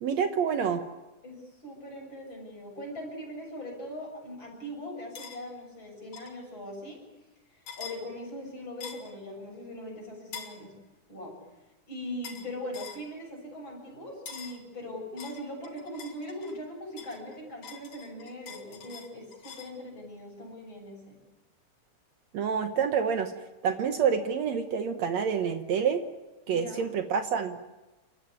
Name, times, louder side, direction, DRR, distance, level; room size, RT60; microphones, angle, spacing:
voice 1, 0.0-0.8 22.3-23.3 23.6-26.0 26.5-27.7, right 7 dB, 65° right, 7 dB, 2.2 m, -27 dB
voice 2, 1.2-7.0 7.8-10.7 11.1-11.3 11.9-21.2 26.5-26.9, left 1 dB, 35° left, 0 dB, 7.8 m, -40 dB
sound 1, 5.1-5.4 6.1-6.4 7.7-8.0 8.8-9.1 10.3-10.6 12.2-12.5 12.7-13.0 14.3-14.6 15.2-16.6 17.0-19.8, left 6 dB, 85° left, 4.0 m, -44 dB
29.5 x 14.0 x 9.7 m, 1.1 s
omnidirectional pair, 3.5 m